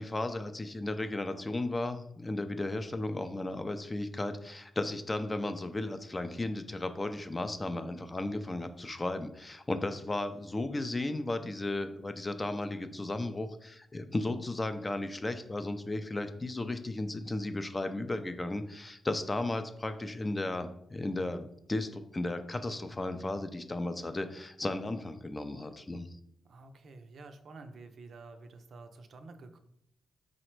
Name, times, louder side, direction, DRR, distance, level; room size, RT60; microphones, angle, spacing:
voice 1, 0.0-26.1, left 2 dB, 25° left, 9 dB, 0.4 m, -35 dB
voice 2, 26.5-29.6, right 3 dB, 65° right, 7 dB, 0.4 m, -50 dB
3.9 x 2.1 x 4.4 m, 0.73 s
cardioid pair, 80°, 0 cm